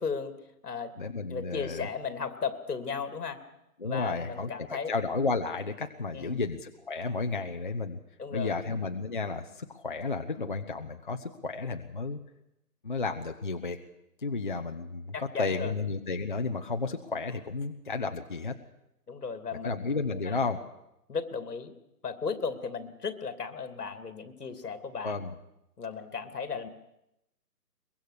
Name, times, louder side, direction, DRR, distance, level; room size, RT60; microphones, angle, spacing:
voice 1, 0.0-0.9 1.3-3.4 3.8-4.9 6.1-6.4 8.2-8.6 15.1-15.7 19.1-19.7 20.2-20.4 21.1-21.7 22.0-25.2 25.8-26.7, left 5 dB, 70° left, 9 dB, 2.8 m, -35 dB
voice 2, 1.0-1.9 3.8-8.0 8.3-12.2 12.8-13.8 14.2-18.6 19.6-20.6 25.0-25.3, left 3 dB, 30° left, 6 dB, 0.7 m, -32 dB
23.0 x 22.0 x 6.6 m, 0.85 s
hypercardioid pair, 170°, 48 cm